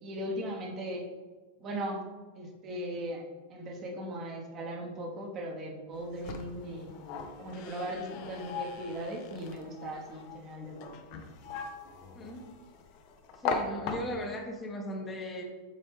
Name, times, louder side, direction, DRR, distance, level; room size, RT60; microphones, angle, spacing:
voice 1, 0.0-1.1 1.6-2.1 2.3-3.2 3.5-6.9 7.4-11.2, right 1 dB, 30° right, 1 dB, 1.0 m, -38 dB
sound 1, 5.9-14.4, left 5 dB, 45° left, 0.7 m, -40 dB
voice 2, 12.1-12.5 13.4-15.4, equal, 20° left, 2 dB, 1.0 m, -37 dB
7.5 x 4.2 x 3.4 m, 1.3 s
figure-of-eight pair, 90°, 0 cm